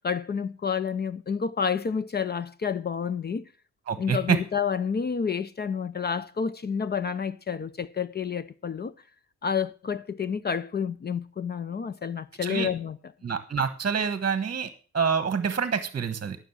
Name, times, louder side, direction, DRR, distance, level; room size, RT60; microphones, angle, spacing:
voice 1, 0.0-3.5 4.0-8.9 9.4-13.0, left 6 dB, 35° left, 0.6 m, -29 dB
voice 2, 3.9-4.4 12.4-12.7 13.2-16.4, right 6 dB, 35° right, 1.2 m, -27 dB
13.0 x 6.4 x 7.1 m
cardioid pair, 90°, 30 cm